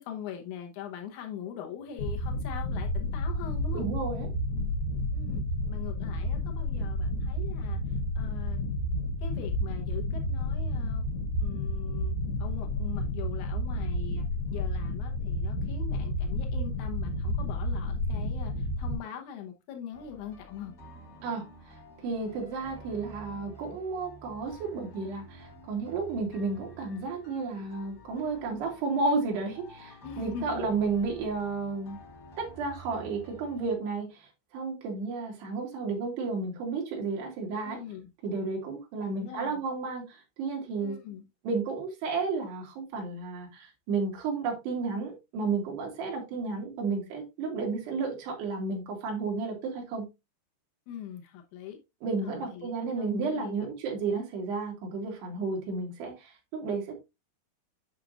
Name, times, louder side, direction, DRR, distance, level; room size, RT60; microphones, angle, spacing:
voice 1, 0.0-3.9 5.1-8.6 9.2-11.1 11.4-20.7 30.0-30.7 37.6-38.1 39.1-39.6 40.8-41.3 50.9-51.8 52.2-52.7 53.0-53.7, left 9 dB, 90° left, 1.7 m, -42 dB
sound 1, 2.0-19.0, left 1 dB, 70° left, 3.1 m, -31 dB
voice 2, 3.7-4.3 21.2-21.4 22.0-32.0 32.4-34.3 34.5-37.8 38.2-41.0 41.5-50.0 52.0-57.0, right 4 dB, 75° right, 3.8 m, -32 dB
sound 2, 19.9-33.7, right 1 dB, 50° left, 1.2 m, -50 dB
8.1 x 6.0 x 2.5 m
omnidirectional pair, 4.9 m